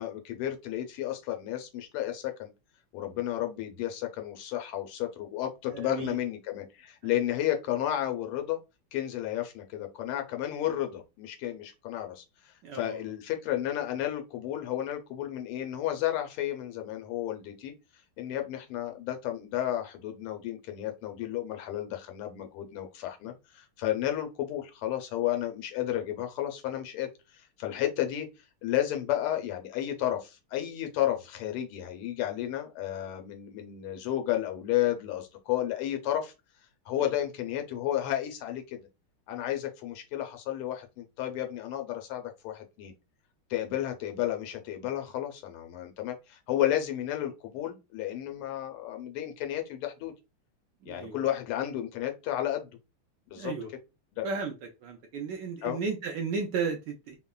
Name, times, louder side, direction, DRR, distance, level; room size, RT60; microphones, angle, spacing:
voice 1, 0.0-2.5 2.9-8.6 8.9-17.7 18.2-28.3 28.6-36.3 36.9-38.8 39.3-42.9 43.5-50.1 50.9-52.7 53.3-53.5 54.1-54.3 55.6-55.8, left 12 dB, 85° left, 1.5 m, -32 dB
voice 2, 5.7-6.2 12.6-13.0 50.8-51.3 53.4-53.7 54.2-57.2, right 5 dB, 80° right, 1.0 m, -34 dB
3.5 x 2.1 x 2.2 m
omnidirectional pair, 2.4 m